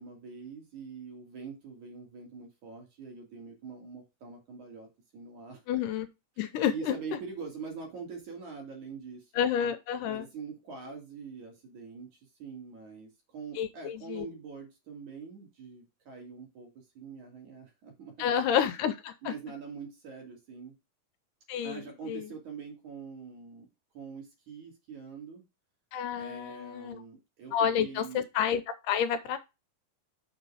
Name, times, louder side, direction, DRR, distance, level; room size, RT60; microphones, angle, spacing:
voice 1, 0.0-4.9 5.1-5.6 6.7-9.3 10.1-16.7 17.0-18.3 19.2-20.8 21.6-23.7 23.9-25.4 26.2-28.2, right 5 dB, 60° right, 0 dB, 4.2 m, -44 dB
voice 2, 5.7-6.1 6.4-6.9 9.4-10.3 13.6-14.3 18.2-19.3 21.5-22.3 25.9-27.0 27.5-29.4, left 8 dB, 80° left, 11 dB, 2.2 m, -30 dB
6.8 x 5.2 x 4.9 m, 0.25 s
omnidirectional pair, 3.9 m